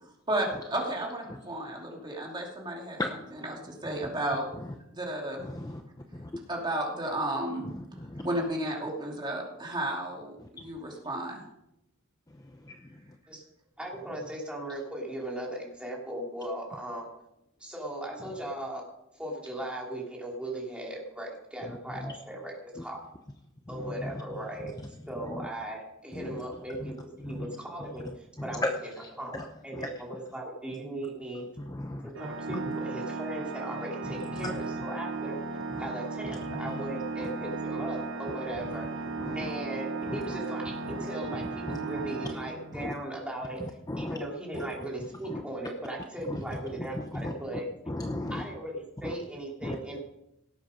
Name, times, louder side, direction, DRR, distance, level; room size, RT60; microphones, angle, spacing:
voice 1, 0.3-3.0 3.3-4.5 4.9-5.4 6.5-7.7 8.2-11.4, right 1 dB, 20° right, -1 dB, 2.8 m, -33 dB
voice 2, 5.4-5.8 6.1-6.3 8.0-8.2 12.6-12.8 22.0-22.1 23.7-24.1 25.2-25.5 26.1-26.4 26.8-26.9 27.2-27.5 28.5-28.7 29.0-29.4 29.7-29.9 31.6-32.1 32.5-32.6 34.4-34.5 35.7-35.8 39.2-39.5 40.1-40.2 40.9-41.0 41.7-42.0 42.7-42.9 43.9-44.2 44.5-44.6 45.2-45.4 46.3-46.4 47.1-47.3 47.9-48.4 49.0-49.1 49.6-50.0, left 1 dB, 20° left, 4 dB, 0.7 m, -35 dB
voice 3, 13.8-17.1 17.6-18.8 19.1-23.0 23.7-24.7 25.1-28.9 29.2-31.5 32.0-38.9 39.3-47.7 48.3-50.0, right 1 dB, 5° right, -3 dB, 3.2 m, -38 dB
Organ, 32.2-43.0, right 3 dB, 60° right, 0.9 m, -36 dB
18.0 x 8.2 x 5.2 m, 0.84 s
head